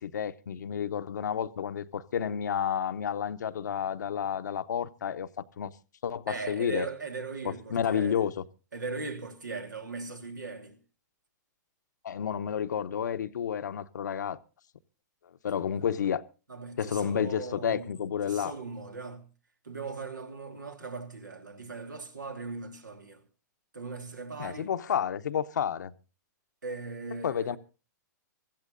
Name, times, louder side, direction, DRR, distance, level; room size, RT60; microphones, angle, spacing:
voice 1, 0.0-5.3 5.6-5.7 6.0-6.9 7.4-8.4 12.0-14.4 15.4-16.2 16.8-18.5 24.4-25.9 27.2-27.6, left 8 dB, 70° left, 0.9 m, -30 dB
voice 2, 6.3-8.2 8.7-10.8 16.5-19.3 19.6-23.2 23.7-24.7 26.6-27.6, right 4 dB, 85° right, 3.2 m, -39 dB
24.5 x 15.0 x 2.6 m
hypercardioid pair, 115°, 10 cm